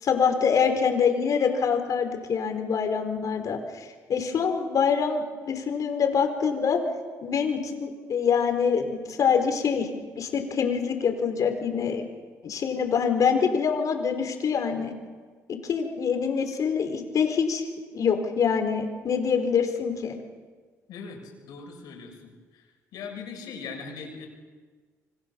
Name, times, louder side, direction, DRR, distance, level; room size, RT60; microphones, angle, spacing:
voice 1, 0.0-6.8 7.2-9.9 10.2-12.1 12.4-14.9 15.5-17.6 17.9-20.2, left 6 dB, 60° left, 5 dB, 5.0 m, -25 dB
voice 2, 20.9-22.6 22.9-24.3, left 5 dB, 80° left, 2 dB, 6.9 m, -40 dB
28.0 x 24.5 x 7.3 m, 1.5 s
supercardioid pair, 70°, 7 cm